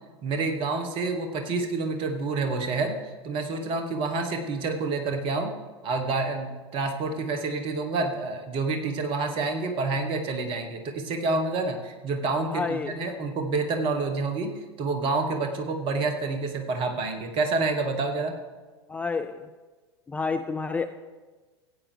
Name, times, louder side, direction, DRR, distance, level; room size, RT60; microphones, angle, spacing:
voice 1, 0.2-5.5 5.8-18.3, right 3 dB, 40° right, 5 dB, 1.4 m, -28 dB
voice 2, 12.5-13.0 18.9-19.4 20.1-20.9, left 4 dB, 10° left, 8 dB, 0.4 m, -29 dB
15.5 x 8.8 x 3.4 m, 1.3 s
figure-of-eight pair, 85°, 14 cm